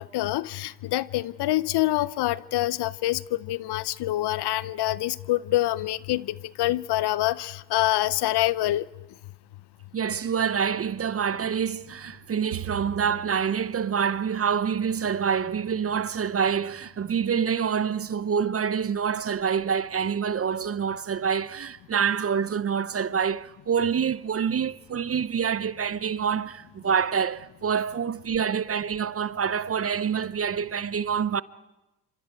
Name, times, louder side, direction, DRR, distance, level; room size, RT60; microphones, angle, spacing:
voice 1, 0.0-8.9, left 15 dB, 55° left, 0.8 m, -26 dB
voice 2, 9.9-31.4, right 7 dB, 30° right, 0.7 m, -26 dB
Bowed string instrument, 12.5-15.9, right 15 dB, 75° right, 1.4 m, -43 dB
29.5 x 26.0 x 4.6 m
hypercardioid pair, 60°, 49 cm